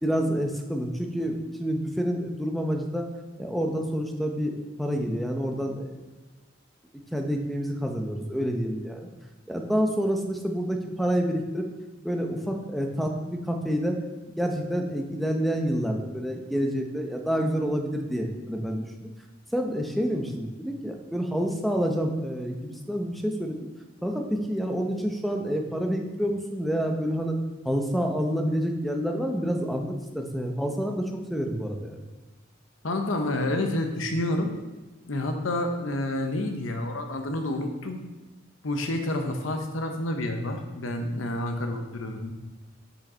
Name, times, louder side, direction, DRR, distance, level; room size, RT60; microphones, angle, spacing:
voice 1, 0.0-3.1 3.4-5.9 7.1-9.1 9.5-11.7 12.0-14.0 14.4-19.1 19.5-23.6 24.0-27.4 27.6-32.0, equal, ahead, 3 dB, 0.6 m, -28 dB
voice 2, 32.8-34.5 35.1-38.0 38.6-42.3, left 1 dB, 80° left, 5 dB, 0.8 m, -29 dB
6.2 x 5.0 x 4.3 m, 1.2 s
head